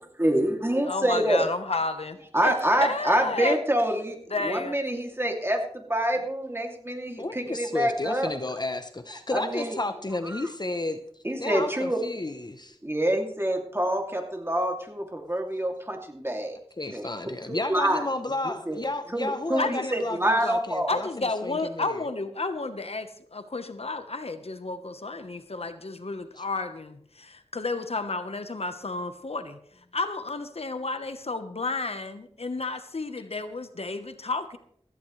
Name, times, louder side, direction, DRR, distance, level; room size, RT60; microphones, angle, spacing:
voice 1, 0.2-1.5 2.3-8.3 9.3-9.8 10.3-10.5 11.2-12.0 12.8-16.5 16.9-17.1 17.5-18.0 18.4-18.8 19.1-21.0, right 1 dB, 20° right, 2 dB, 2.7 m, -26 dB
voice 2, 0.8-2.2 2.4-2.5 2.8-3.6 4.3-4.8 19.6-19.9 20.9-29.6 29.9-34.6, left 3 dB, 70° left, 9 dB, 1.1 m, -31 dB
voice 3, 7.2-11.0 11.4-12.8 16.8-21.9 26.4-26.5, left 2 dB, 40° left, 9 dB, 0.8 m, -32 dB
16.5 x 14.5 x 3.3 m, 0.65 s
wide cardioid pair, 50°, 11 cm